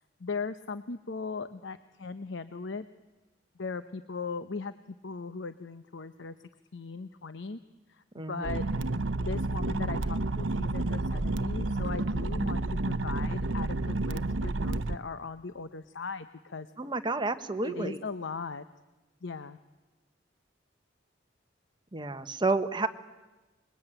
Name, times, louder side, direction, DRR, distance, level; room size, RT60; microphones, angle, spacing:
voice 1, 0.2-2.8 3.6-4.7 5.0-6.3 6.7-7.6 7.9-8.6 9.2-16.7 17.6-18.6 19.2-19.6, left 4 dB, 70° left, 11 dB, 0.8 m, -38 dB
voice 2, 8.1-8.7 16.8-18.0 21.9-22.9, right 3 dB, 25° right, 9 dB, 1.3 m, -30 dB
sound 1, 8.4-15.0, right 2 dB, 80° right, 0.8 m, -30 dB
25.5 x 22.0 x 9.1 m, 1.1 s
head